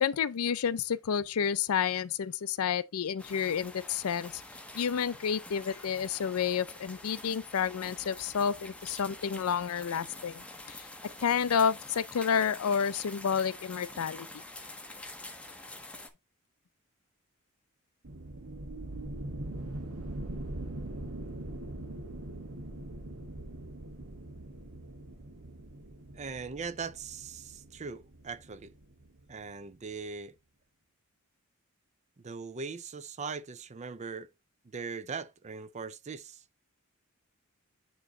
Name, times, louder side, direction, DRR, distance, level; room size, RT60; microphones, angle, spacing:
voice 1, 0.0-4.4 4.7-10.9 11.2-14.3, left 7 dB, 75° left, 0.4 m, -30 dB
sound 1, 3.2-16.1, left 2 dB, 5° left, 0.7 m, -47 dB
sound 2, 18.0-29.5, right 1 dB, 85° right, 1.2 m, -42 dB
voice 2, 26.1-28.7 29.3-30.3 32.2-34.3 34.7-36.4, right 5 dB, 30° right, 0.4 m, -40 dB
9.1 x 3.1 x 3.7 m
head